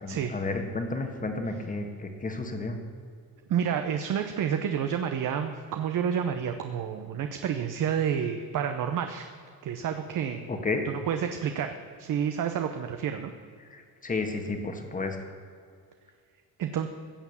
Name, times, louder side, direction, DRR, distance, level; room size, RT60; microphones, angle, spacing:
voice 1, 0.0-2.8 10.5-10.8 13.7-15.2, left 3 dB, 20° left, 5 dB, 1.5 m, -32 dB
voice 2, 3.5-9.3 9.6-10.5 10.8-13.3 16.6-16.9, right 8 dB, 55° right, 6 dB, 0.8 m, -29 dB
16.0 x 7.1 x 7.1 m, 2.2 s
cardioid pair, 145°, 37 cm